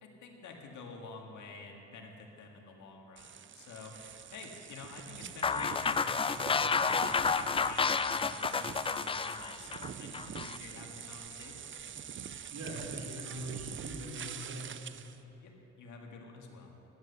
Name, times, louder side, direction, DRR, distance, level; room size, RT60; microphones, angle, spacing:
voice 1, 0.0-3.9 4.3-11.7 15.4-16.8, left 4 dB, 75° left, 1 dB, 1.9 m, -49 dB
sound 1, 3.2-15.2, right 8 dB, 40° right, 0.6 m, -45 dB
sound 2, 5.4-10.6, left 5 dB, 20° left, 0.3 m, -30 dB
voice 2, 12.5-14.7, right 1 dB, 65° right, -4 dB, 3.4 m, -42 dB
14.0 x 9.8 x 6.9 m, 2.9 s
cardioid pair, 90°, 30 cm